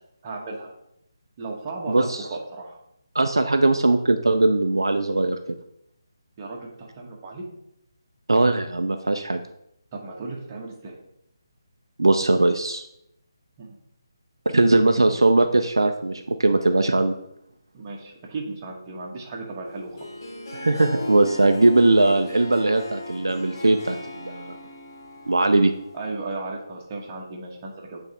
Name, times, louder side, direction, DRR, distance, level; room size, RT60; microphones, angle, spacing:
voice 1, 0.2-0.7 1.4-2.8 6.4-7.5 9.9-11.0 13.6-13.8 17.7-20.1 25.9-28.0, right 3 dB, 25° right, -1 dB, 1.3 m, -35 dB
voice 2, 1.9-2.3 3.1-5.6 8.3-9.4 12.0-12.8 14.5-17.1 20.5-24.6 25.3-25.7, right 2 dB, 75° right, 7 dB, 0.5 m, -20 dB
Harp, 19.6-26.2, left 1 dB, 45° left, 1.4 m, -37 dB
7.7 x 3.5 x 4.2 m, 0.78 s
figure-of-eight pair, 150°, 2 cm